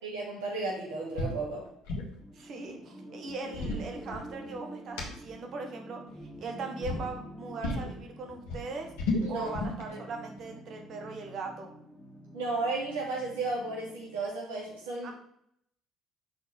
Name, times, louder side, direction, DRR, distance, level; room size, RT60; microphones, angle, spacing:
voice 1, 0.0-1.7 9.2-9.5 12.3-15.1, right 3 dB, 80° right, -4 dB, 2.4 m, -34 dB
sound 1, 1.2-1.4 1.7-2.2 3.3-4.6 5.0-5.1 6.1-6.5 6.8-7.1 7.6-7.9 8.3-9.8, left 2 dB, 70° left, 1.5 m, -32 dB
sound 2, 2.2-14.2, equal, 15° left, 2.1 m, -47 dB
voice 2, 2.3-6.0 6.4-8.9 9.3-11.7 15.0-15.1, right 4 dB, 55° right, 4 dB, 1.4 m, -39 dB
6.2 x 4.3 x 5.1 m, 0.69 s
hypercardioid pair, 55°, 0 cm